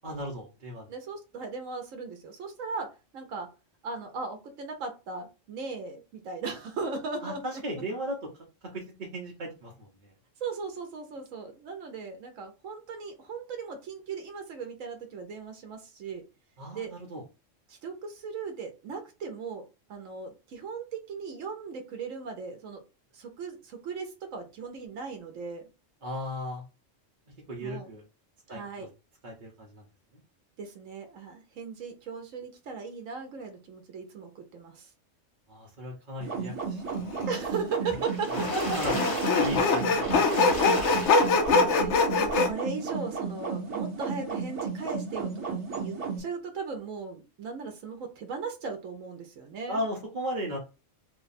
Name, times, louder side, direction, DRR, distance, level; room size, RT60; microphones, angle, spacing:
voice 1, 0.0-0.9 7.2-8.2 8.7-10.1 16.6-17.2 26.0-26.6 27.5-28.0 28.5-28.9 29.2-29.8 35.5-37.2 37.9-38.0 38.3-38.4 38.8-39.0 39.4-41.3 49.7-50.6, equal, 45° right, -3 dB, 0.9 m, -36 dB
voice 2, 0.9-3.5 3.8-7.6 10.4-16.2 16.7-16.9 17.7-19.6 19.9-22.8 23.1-25.7 27.6-27.9 28.5-28.9 30.6-34.9 37.3-38.8 41.6-49.8, right 4 dB, 85° right, 5 dB, 1.1 m, -37 dB
sound 1, 36.2-46.2, right 5 dB, 65° right, 1.5 m, -34 dB
Sawing, 37.1-37.2 38.3-42.5, left 4 dB, 65° left, 0.9 m, -23 dB
Water / Splash splatter, 37.9-41.8 42.3-42.4 42.8-42.9, equal, 30° left, 1.0 m, -36 dB
3.0 x 2.2 x 4.0 m, 0.30 s
omnidirectional pair, 1.3 m